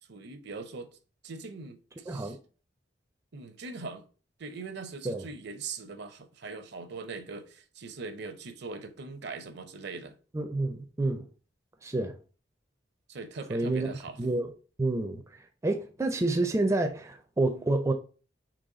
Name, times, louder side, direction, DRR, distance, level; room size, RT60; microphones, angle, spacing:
voice 1, 0.1-0.9 1.2-2.4 3.3-4.0 4.4-10.1 13.1-14.2, right 4 dB, 65° right, 0.6 m, -41 dB
voice 2, 2.1-2.4 5.0-5.2 10.3-11.3 11.8-12.2 13.5-13.9 14.2-14.5 14.8-15.2 15.6-17.9, right 2 dB, 15° right, 0.4 m, -28 dB
4.0 x 3.0 x 3.8 m
head